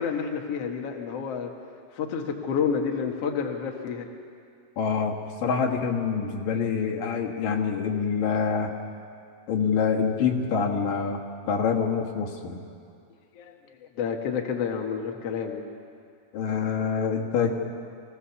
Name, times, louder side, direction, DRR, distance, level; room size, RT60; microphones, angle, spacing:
voice 1, 0.0-1.5 1.9-4.1 13.3-15.7, left 6 dB, 55° left, 2 dB, 2.1 m, -29 dB
voice 2, 4.8-5.1 5.4-8.7 9.5-11.2 11.5-12.6 16.3-17.5, left 6 dB, 75° left, 0 dB, 3.3 m, -26 dB
25.0 x 17.5 x 7.1 m, 2.3 s
omnidirectional pair, 3.9 m